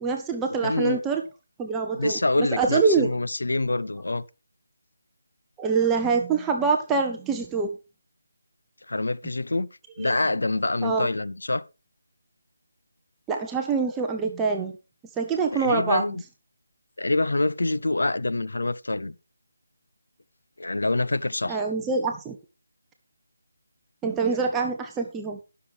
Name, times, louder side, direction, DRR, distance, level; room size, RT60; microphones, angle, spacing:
voice 1, 0.0-1.2 1.6-2.2 2.5-3.1 5.6-7.7 10.0-10.1 10.8-11.1 13.3-14.7 15.2-16.0 21.5-22.4 24.0-25.4, right 4 dB, 10° right, 0.8 m, -25 dB
voice 2, 0.6-1.0 1.9-4.2 8.9-9.7 10.0-11.6 15.6-16.2 17.0-19.2 20.6-21.6, left 2 dB, 75° left, 0.7 m, -26 dB
19.5 x 6.7 x 3.4 m
figure-of-eight pair, 160°, 0 cm